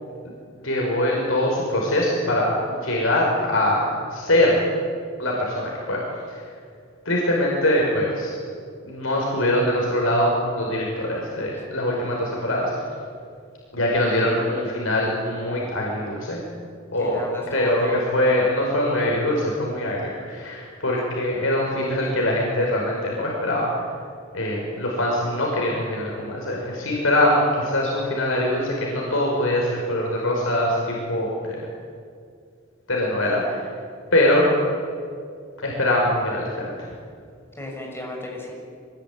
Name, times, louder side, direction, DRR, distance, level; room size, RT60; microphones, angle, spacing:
voice 1, 0.6-4.6 5.2-6.0 6.3-6.5 7.1-8.3 8.8-12.7 13.7-16.4 16.9-23.9 24.3-31.6 32.9-33.6 34.1-34.5 35.6-36.9, left 1 dB, 85° left, -3 dB, 5.7 m, -23 dB
voice 2, 17.0-18.3 37.6-38.5, left 1 dB, 10° left, -1 dB, 6.6 m, -34 dB
24.5 x 21.0 x 9.8 m, 2.2 s
head